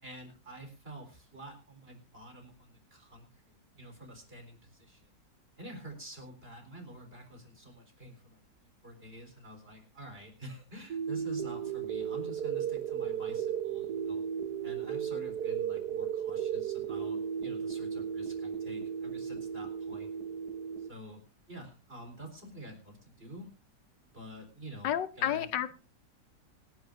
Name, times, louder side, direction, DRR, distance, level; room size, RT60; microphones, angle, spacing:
voice 1, 0.0-5.1 5.6-14.2 14.6-20.1 20.8-21.2 21.5-23.5 24.1-24.9 25.2-25.5, right 1 dB, 30° right, 4 dB, 4.2 m, -48 dB
sound 1, 10.9-20.9, right 8 dB, 65° right, 1.5 m, -35 dB
voice 2, 24.8-25.8, left 10 dB, 80° left, 14 dB, 1.5 m, -31 dB
26.0 x 10.5 x 2.6 m, 0.31 s
omnidirectional pair, 1.9 m